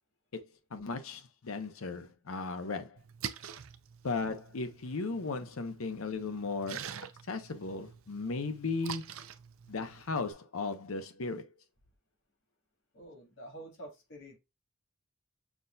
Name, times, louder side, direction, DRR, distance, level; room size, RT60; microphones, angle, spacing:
voice 1, 0.7-3.0 4.0-6.9 7.3-9.1 9.7-11.5, left 3 dB, 80° left, 0.7 m, -36 dB
Splash splatter, 3.0-10.3, right 8 dB, 75° right, 0.5 m, -46 dB
voice 2, 12.9-14.4, right 1 dB, 60° left, 1.7 m, -48 dB
6.0 x 2.6 x 2.2 m
head